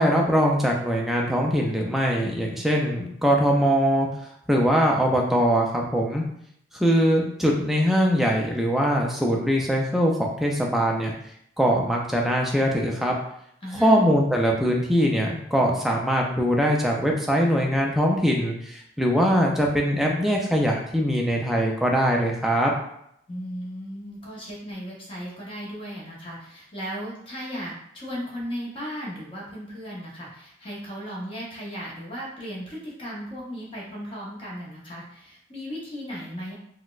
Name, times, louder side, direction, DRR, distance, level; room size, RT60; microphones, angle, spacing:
voice 1, 0.0-4.1 4.5-6.2 6.7-11.1 11.6-13.1 13.8-22.7, equal, ahead, -1 dB, 0.3 m, -22 dB
voice 2, 13.6-14.0 23.3-36.5, equal, 25° left, -5 dB, 0.8 m, -36 dB
4.0 x 2.1 x 2.4 m, 0.74 s
head